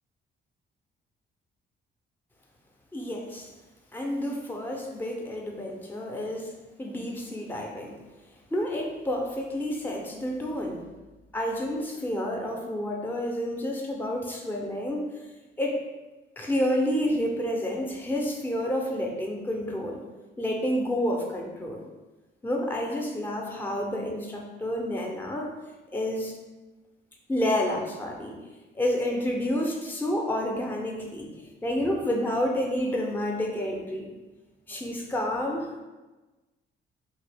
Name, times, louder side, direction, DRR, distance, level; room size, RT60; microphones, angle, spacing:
voice 1, 2.9-3.5 3.9-8.0 8.5-10.8 11.3-15.2 15.6-15.8 16.4-20.0 20.4-21.9 22.4-25.5 25.9-26.4 27.3-28.4 28.7-31.3 31.6-34.1 34.7-35.7, left 1 dB, 10° left, 0 dB, 0.5 m, -29 dB
2.8 x 2.5 x 3.3 m, 1.2 s
cardioid pair, 90°, 20 cm